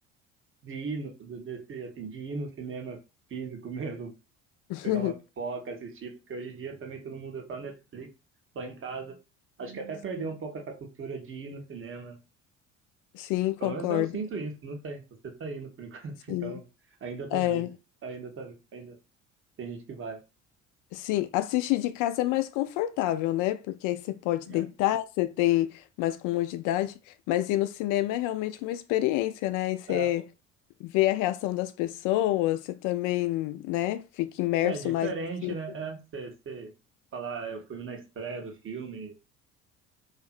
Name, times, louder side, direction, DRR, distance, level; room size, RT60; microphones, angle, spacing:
voice 1, 0.6-3.0 3.3-4.1 4.8-8.1 8.5-9.2 9.6-12.2 13.6-16.6 17.0-17.7 18.0-19.0 19.6-20.2 24.5-24.6 29.9-30.1 34.6-36.7 37.1-39.1, right 4 dB, 35° right, 0.9 m, -37 dB
voice 2, 4.7-5.1 13.1-14.2 16.3-16.6 17.3-17.7 20.9-26.9 27.3-30.2 30.8-35.1 35.4-35.5, left 15 dB, 55° left, 0.5 m, -27 dB
2.6 x 2.5 x 2.5 m
hypercardioid pair, 60°, 37 cm